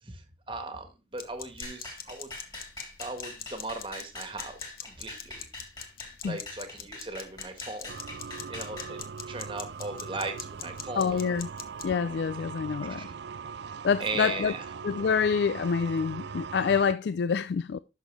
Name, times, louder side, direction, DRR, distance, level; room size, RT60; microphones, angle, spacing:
voice 1, 0.0-2.3 3.0-5.7 6.2-7.9 8.5-11.3 12.8-13.0 14.0-14.6, right 3 dB, 30° right, 1.5 m, -38 dB
sound 1, 1.1-11.9, left 9 dB, 55° left, 1.1 m, -45 dB
sound 2, 1.6-9.0, left 2 dB, 25° left, 3.3 m, -44 dB
sound 3, 7.9-16.9, right 6 dB, 75° right, 0.4 m, -40 dB
voice 2, 11.0-11.5 11.8-13.1 13.8-14.5 14.8-17.8, left 6 dB, 70° left, 0.3 m, -27 dB
11.5 x 6.3 x 3.3 m
head